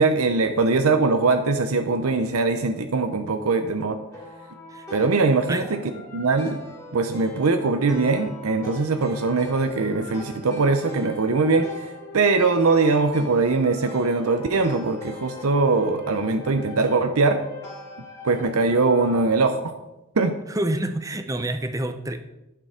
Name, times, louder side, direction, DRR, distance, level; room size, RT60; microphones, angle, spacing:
voice 1, 0.0-4.0 4.9-5.8 6.1-6.6 6.9-17.4 18.2-19.6 20.1-20.3, right 3 dB, 80° right, 7 dB, 0.7 m, -21 dB
sound 1, 4.1-19.4, left 2 dB, 15° left, 2.7 m, -41 dB
voice 2, 20.5-22.2, right 1 dB, 15° right, 9 dB, 0.6 m, -27 dB
11.0 x 6.7 x 5.0 m, 0.98 s
head